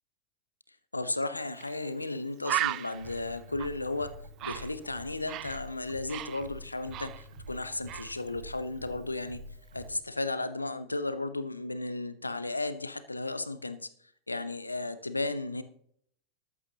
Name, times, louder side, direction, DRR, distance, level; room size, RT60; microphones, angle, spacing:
voice 1, 0.9-4.1 4.4-9.4 9.7-13.9 14.3-15.6, left 2 dB, 80° left, 12 dB, 0.8 m, -34 dB
Bird, 1.6-1.7 2.0-2.1 2.4-5.6 5.9-7.6 7.9-8.2, right 15 dB, 35° right, 0.4 m, -36 dB
sound 1, 2.9-9.9, equal, 70° right, 2.2 m, -47 dB
14.0 x 11.0 x 2.8 m, 0.65 s
figure-of-eight pair, 90°, 0 cm